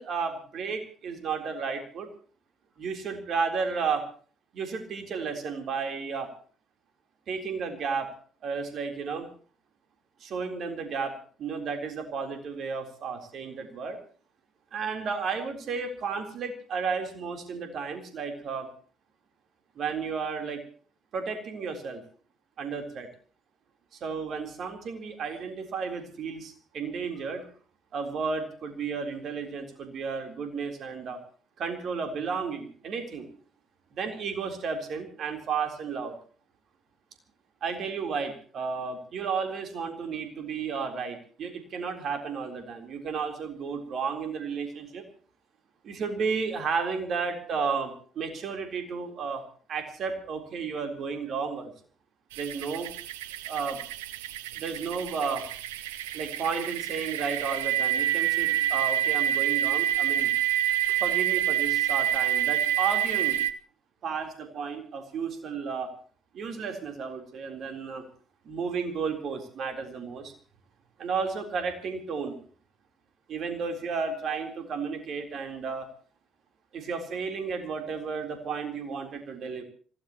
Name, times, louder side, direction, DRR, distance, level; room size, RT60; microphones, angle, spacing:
voice 1, 0.0-2.1 2.8-4.1 4.5-6.3 7.3-8.1 8.4-9.3 10.2-14.0 14.7-18.7 19.8-20.6 21.1-22.0 22.6-23.1 24.0-27.5 27.9-31.2 31.6-33.3 33.9-36.2 37.6-45.0 45.8-49.4 49.7-51.7 52.4-52.9 53.5-53.8 54.5-55.5 56.1-60.3 61.0-63.4 64.0-65.9 66.3-68.1 68.4-70.3 71.0-72.4 73.3-75.9 76.7-79.6, right 5 dB, 55° right, 5 dB, 3.9 m, -33 dB
sound 1, 52.3-63.5, right 12 dB, 75° right, 0.7 m, -27 dB
26.0 x 17.0 x 3.0 m, 0.42 s
figure-of-eight pair, 45°, 0 cm